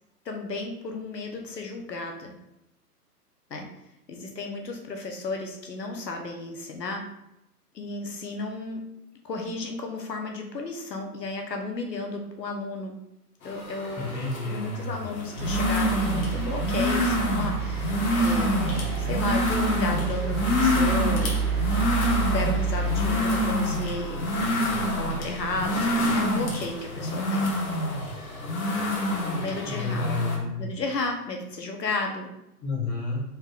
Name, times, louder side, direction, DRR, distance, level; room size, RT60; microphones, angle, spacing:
voice 1, 0.2-2.3 3.5-3.7 4.1-7.1 7.7-8.8 9.2-12.9 13.4-14.1 14.4-21.4 22.3-24.5 24.8-27.5 29.3-30.1 30.6-32.3, left 3 dB, 90° left, 2 dB, 1.0 m, -33 dB
sound 1, 13.4-30.4, left 1 dB, 60° left, 1.2 m, -27 dB
voice 2, 14.0-14.6 29.6-30.6 32.6-33.2, left 3 dB, 15° left, -3 dB, 0.6 m, -30 dB
sound 2, 15.4-27.6 28.9-29.0, right 6 dB, 40° right, 0.6 m, -30 dB
4.1 x 3.7 x 2.4 m, 0.85 s
hypercardioid pair, 130°, 48 cm